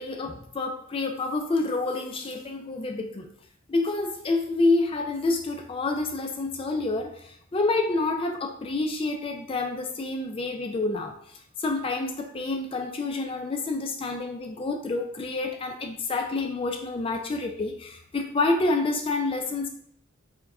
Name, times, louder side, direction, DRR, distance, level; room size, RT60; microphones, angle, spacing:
voice 1, 0.0-3.3 3.7-19.7, left 3 dB, 25° left, 3 dB, 0.3 m, -28 dB
4.6 x 2.2 x 4.7 m, 0.68 s
head